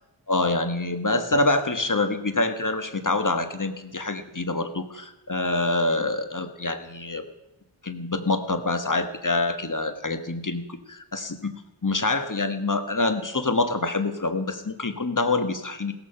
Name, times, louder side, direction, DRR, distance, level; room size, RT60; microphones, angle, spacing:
voice 1, 0.3-7.2 7.8-11.5 11.8-15.9, left 2 dB, 40° left, 8 dB, 1.6 m, -26 dB
16.5 x 14.5 x 5.8 m, 0.95 s
wide cardioid pair, 45°, 48 cm